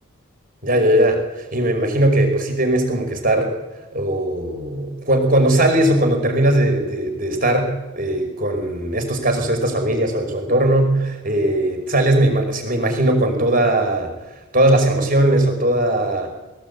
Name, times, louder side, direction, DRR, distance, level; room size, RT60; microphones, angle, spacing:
voice 1, 0.6-1.2 1.5-3.5 3.9-14.1 14.5-16.3, right 1 dB, 40° right, 5 dB, 5.4 m, -19 dB
21.0 x 19.5 x 8.5 m, 1.1 s
head